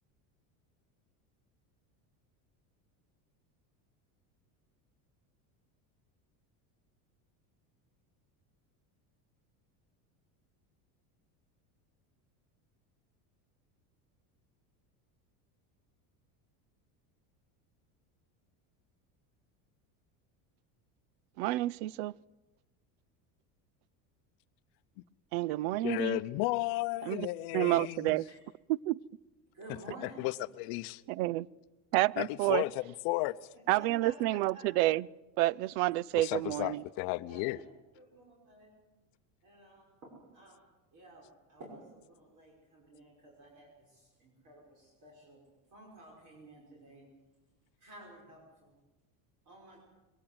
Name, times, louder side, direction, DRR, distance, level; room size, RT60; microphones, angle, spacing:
voice 1, 21.4-22.1 25.3-26.2 27.1-27.3 27.5-28.2 28.7-29.0 31.1-31.5 31.9-32.6 33.7-35.1 35.4-36.8, right 17 dB, 75° right, 0.6 m, -29 dB
voice 2, 25.8-28.2 30.0-31.0 32.2-33.5 36.1-37.6, left 20 dB, 60° left, 0.7 m, -34 dB
voice 3, 29.5-30.2 33.7-34.7 37.3-37.6 37.9-38.7 39.4-40.6 40.9-45.4 45.7-47.1 47.8-48.7 49.5-49.8, right 2 dB, 45° right, 5.9 m, -53 dB
21.5 x 17.5 x 7.9 m
cardioid pair, 150°, 44 cm